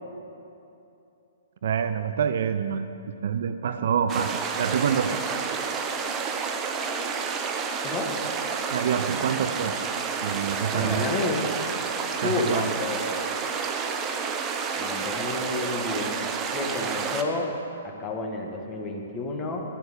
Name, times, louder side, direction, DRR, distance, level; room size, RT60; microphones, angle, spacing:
voice 1, 1.6-5.2 8.7-9.7 10.2-11.2 12.2-12.7, right 7 dB, 55° right, 10 dB, 0.5 m, -27 dB
sound 1, 4.1-17.2, right 5 dB, 20° right, 0.8 m, -30 dB
voice 2, 10.7-11.5 12.2-13.3 14.8-17.5 18.0-19.6, left 2 dB, 20° left, 1 dB, 1.7 m, -30 dB
12.5 x 7.7 x 6.9 m, 2.8 s
figure-of-eight pair, 120°, 0 cm